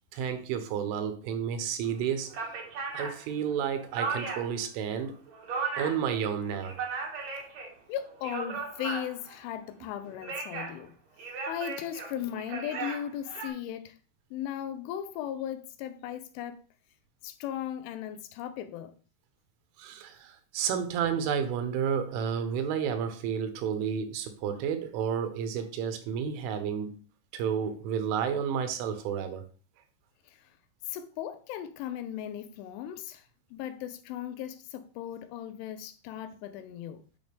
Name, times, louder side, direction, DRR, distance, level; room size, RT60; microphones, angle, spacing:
voice 1, 0.1-2.3 2.9-5.2 5.8-6.8 19.8-27.0 27.3-29.5, right 7 dB, 85° right, 3.6 m, -31 dB
sound 1, 1.8-1.9 2.3-4.6 5.0-6.1 6.5-7.7 8.1-9.3 10.0-10.8 11.2-13.5, right 4 dB, 60° right, 2.0 m, -36 dB
voice 2, 7.9-10.9 11.5-14.0 14.3-16.6 17.2-18.9 30.3-30.5 30.9-37.0, left 10 dB, 85° left, 3.2 m, -37 dB
9.1 x 6.3 x 3.5 m
omnidirectional pair, 5.5 m